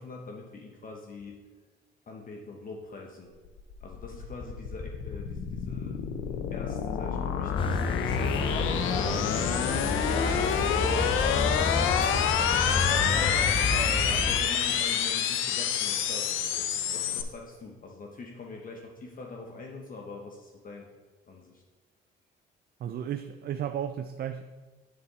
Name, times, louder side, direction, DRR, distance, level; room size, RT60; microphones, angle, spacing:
voice 1, 0.0-1.4 2.1-3.3 3.8-6.0 6.5-12.6 12.9-13.3 14.1-20.9 21.3-21.6 23.0-23.1, left 3 dB, 45° left, 0.9 m, -44 dB
sound 1, 3.5-17.2, left 8 dB, 85° left, 0.6 m, -28 dB
sound 2, 7.6-14.4, left 2 dB, 25° left, 0.5 m, -30 dB
voice 2, 22.8-24.4, right 9 dB, 50° right, 0.4 m, -33 dB
9.4 x 4.2 x 4.1 m
cardioid pair, 90°, 20 cm